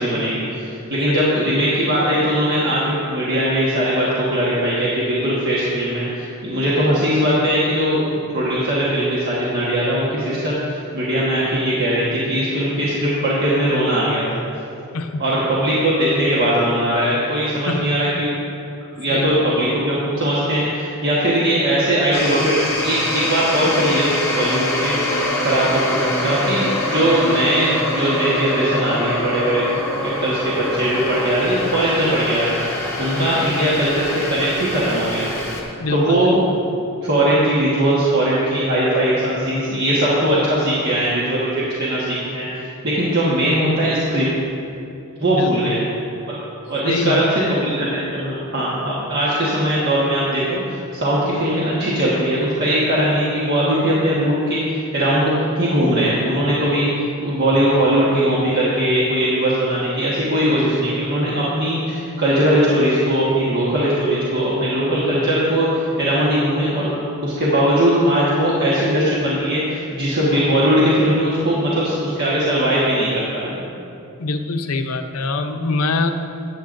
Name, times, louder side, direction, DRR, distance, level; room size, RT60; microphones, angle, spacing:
voice 1, 0.0-14.2 15.2-18.3 19.0-23.0 23.3-29.6 30.2-35.3 35.9-36.4 36.7-36.8 37.0-42.5 42.8-44.3 45.2-45.8 46.3-46.4 46.7-56.9 57.2-66.9 67.2-73.5, right 1 dB, 50° right, -8 dB, 1.3 m, -20 dB
voice 2, 1.1-1.4 14.9-15.2 17.7-18.0 19.1-19.4 33.1-33.5 35.8-36.4 45.3-45.7 46.8-47.4 74.2-76.1, left 3 dB, 80° left, 6 dB, 0.6 m, -24 dB
sound 1, 22.1-35.6, left 1 dB, 15° left, 1.4 m, -24 dB
13.0 x 9.2 x 2.6 m, 2.7 s
head